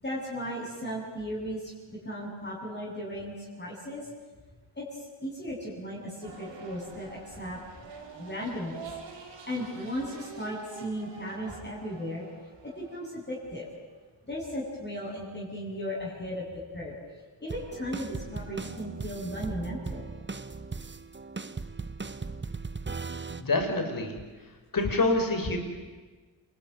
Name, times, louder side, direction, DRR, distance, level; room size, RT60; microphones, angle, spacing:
voice 1, 0.0-4.1 4.7-7.6 8.2-8.8 9.5-12.3 12.6-13.7 14.2-16.4 16.7-16.9 17.4-20.0, equal, 25° left, -5 dB, 7.9 m, -36 dB
sound 1, 6.2-14.1, right 5 dB, 80° right, 5.4 m, -47 dB
sound 2, 17.5-23.4, right 4 dB, 25° right, 1.3 m, -38 dB
voice 2, 23.4-24.2 24.7-25.6, left 2 dB, 50° left, 5 dB, 5.8 m, -26 dB
27.5 x 21.5 x 9.6 m, 1.3 s
cardioid pair, 70°, 44 cm